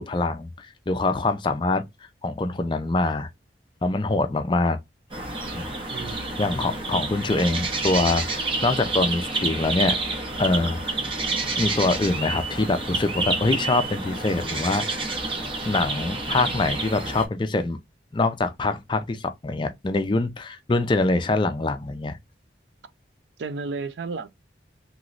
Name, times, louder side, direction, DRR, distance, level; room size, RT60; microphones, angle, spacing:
voice 1, 0.0-1.8 2.2-3.3 3.8-4.8 5.5-5.7 6.4-10.0 10.4-11.0 11.6-15.1 15.6-17.8 18.1-22.2, left 2 dB, 25° left, 0.4 m, -24 dB
sound 1, 5.1-17.3, right 3 dB, 30° right, 0.7 m, -29 dB
voice 2, 5.9-6.4 23.4-24.3, right 4 dB, 75° right, 0.4 m, -32 dB
3.0 x 2.9 x 2.4 m
head